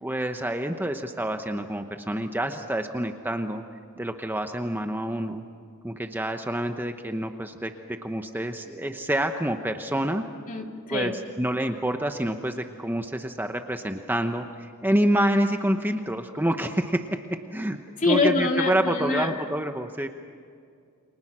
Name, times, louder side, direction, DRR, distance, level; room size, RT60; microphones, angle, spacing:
voice 1, 0.0-3.6 4.0-5.4 5.8-10.3 10.9-17.1 17.5-17.8 18.0-20.1, right 1 dB, 10° right, 6 dB, 1.0 m, -27 dB
voice 2, 10.5-11.1 18.0-19.4, left 3 dB, 40° left, 2 dB, 2.4 m, -24 dB
29.5 x 25.5 x 6.2 m, 2.2 s
head